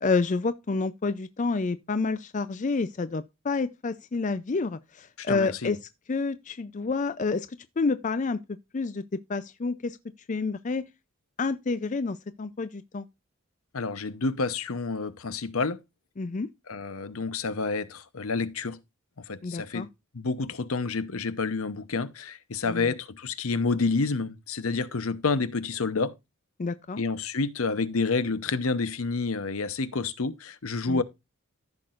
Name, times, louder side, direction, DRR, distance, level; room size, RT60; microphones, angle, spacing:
voice 1, 0.0-5.8 6.1-7.5 7.8-8.4 8.7-10.0 10.3-10.9 11.4-13.1 16.2-16.5 19.4-19.9 22.7-22.9 26.6-27.0 30.9-31.0, left 4 dB, 35° left, 0.4 m, -29 dB
voice 2, 5.2-5.8 13.7-15.8 16.7-18.8 19.3-19.9 20.1-26.1 27.0-31.0, left 4 dB, 75° left, 0.9 m, -29 dB
14.5 x 6.0 x 2.5 m
head